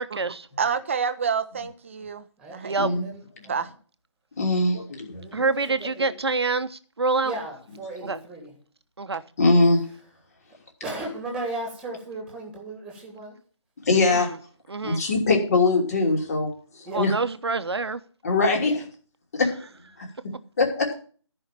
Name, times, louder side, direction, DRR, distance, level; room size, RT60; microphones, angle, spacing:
voice 1, 0.0-0.5 2.6-2.9 5.3-7.3 8.0-8.2 9.0-9.2 14.1-14.4 14.7-15.0 16.9-18.0, right 3 dB, 55° right, 1.1 m, -26 dB
voice 2, 0.6-2.2 2.5-2.8 3.5-3.7, right 6 dB, 25° right, 0.8 m, -28 dB
voice 3, 2.4-3.2 5.1-6.1 7.2-8.5 10.8-13.3 16.8-17.0 18.6-18.8, right 2 dB, 5° right, 2.6 m, -36 dB
voice 4, 4.4-5.4 9.4-9.8 13.9-14.3 14.8-17.1 18.2-18.8 19.3-19.5 20.0-20.1 20.6-21.0, left 3 dB, 30° left, 3.0 m, -22 dB
14.0 x 5.7 x 7.4 m
figure-of-eight pair, 160°, 16 cm